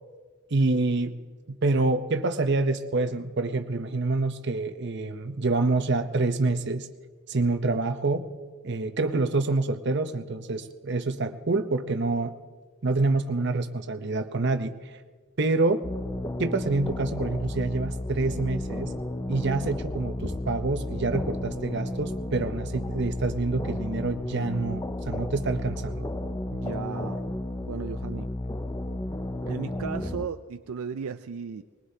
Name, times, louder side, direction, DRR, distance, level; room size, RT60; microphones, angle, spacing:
voice 1, 0.5-1.1 1.5-6.9 7.3-8.3 8.6-12.3 12.8-15.0 15.4-15.9 16.4-18.9 19.3-26.1, right 3 dB, 50° right, 8 dB, 0.7 m, -27 dB
sound 1, 15.8-30.3, left 1 dB, 15° left, 0.4 m, -33 dB
voice 2, 26.5-27.2 27.6-28.3 29.5-31.6, right 6 dB, 75° right, 9 dB, 0.4 m, -35 dB
21.0 x 20.5 x 2.8 m, 1.5 s
head